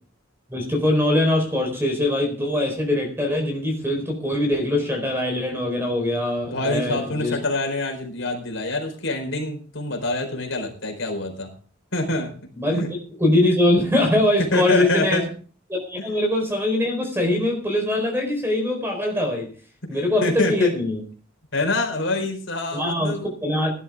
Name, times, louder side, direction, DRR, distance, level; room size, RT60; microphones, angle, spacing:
voice 1, 0.5-7.3 12.5-12.8 13.1-15.2 15.7-19.5 19.9-21.0 22.7-23.7, left 1 dB, 10° right, 4 dB, 4.4 m, -22 dB
voice 2, 6.5-11.5 11.9-12.3 12.7-12.9 14.4-15.2 16.0-16.1 19.8-19.9 20.2-20.7 21.5-23.3, left 2 dB, 65° left, 3 dB, 4.4 m, -26 dB
17.0 x 11.5 x 3.7 m, 0.41 s
head